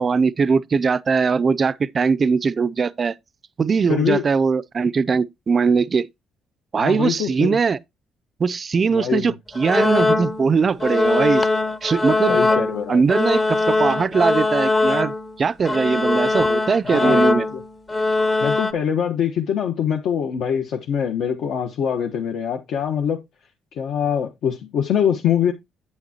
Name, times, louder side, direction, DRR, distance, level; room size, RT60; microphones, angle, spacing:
voice 1, 0.0-3.1 3.6-6.1 6.7-7.8 8.4-11.5 11.8-12.4 12.9-17.5, right 5 dB, 30° right, 0.4 m, -20 dB
voice 2, 3.9-4.2 6.8-7.6 8.9-9.3 10.9-11.0 12.3-13.0 16.9-17.6 18.4-23.2 23.7-25.5, left 8 dB, 65° left, 1.2 m, -23 dB
sound 1, 9.6-10.5 10.8-15.4 15.6-18.7, left 2 dB, 20° left, 0.8 m, -21 dB
8.7 x 8.5 x 2.9 m
cardioid pair, 135°, 0 cm